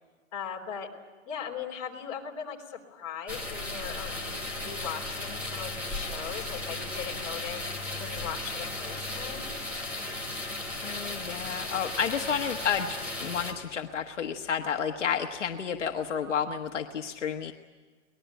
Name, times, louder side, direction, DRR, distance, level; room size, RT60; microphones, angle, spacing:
voice 1, 0.3-0.9 1.3-7.6 8.0-9.5, left 8 dB, 30° left, -1 dB, 3.4 m, -39 dB
sound 1, 3.3-13.5, left 2 dB, 5° right, 1.2 m, -35 dB
voice 2, 10.8-17.5, left 7 dB, 65° left, 4 dB, 1.5 m, -31 dB
24.5 x 20.0 x 9.2 m, 1.4 s
hypercardioid pair, 180°, 38 cm